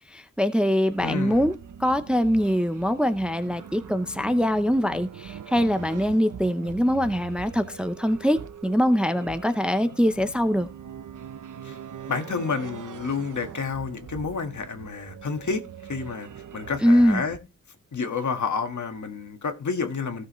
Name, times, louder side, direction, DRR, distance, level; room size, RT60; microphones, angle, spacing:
voice 1, 0.1-10.7 16.8-17.2, equal, 5° right, 0.7 m, -23 dB
sound 1, 0.9-17.4, right 8 dB, 65° right, 0.8 m, -42 dB
voice 2, 1.0-1.4 11.6-11.8 12.1-15.6 15.9-17.4 17.9-20.3, left 5 dB, 60° left, 1.8 m, -30 dB
16.0 x 6.5 x 3.1 m
wide cardioid pair, 105°, 33 cm